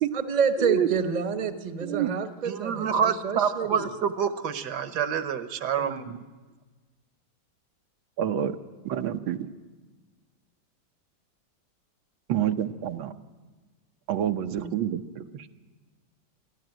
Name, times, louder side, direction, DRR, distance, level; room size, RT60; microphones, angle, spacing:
voice 1, 0.1-3.8 14.6-14.7, right 6 dB, 30° right, 0.9 m, -28 dB
voice 2, 2.4-6.0, right 7 dB, 60° right, 1.5 m, -27 dB
voice 3, 5.8-6.2 8.2-8.6 8.8-9.5 12.3-13.1 14.1-15.5, right 10 dB, 85° right, 1.6 m, -28 dB
28.5 x 11.5 x 9.1 m
omnidirectional pair, 2.1 m